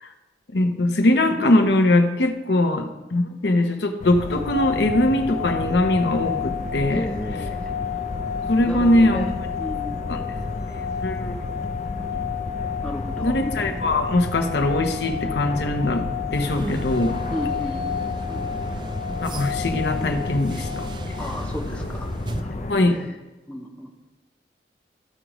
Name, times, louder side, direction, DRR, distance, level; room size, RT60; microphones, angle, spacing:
voice 1, 0.5-7.1 8.5-9.3 10.1-10.2 11.0-11.3 13.2-17.2 19.2-20.9 22.7-23.0, left 1 dB, 75° left, 5 dB, 0.8 m, -21 dB
sound 1, 4.0-22.7, left 2 dB, 40° left, 0.5 m, -32 dB
sound 2, 4.2-21.4, left 9 dB, 65° right, 1.1 m, -32 dB
voice 2, 6.9-7.7 8.6-9.3 9.6-10.3 12.8-13.3 17.3-18.4 21.2-22.1 22.4-23.1 23.5-23.9, left 1 dB, 5° left, 0 dB, 0.7 m, -34 dB
sound 3, 16.3-22.4, right 2 dB, 25° right, 0.3 m, -37 dB
13.5 x 5.0 x 3.0 m, 1.1 s
head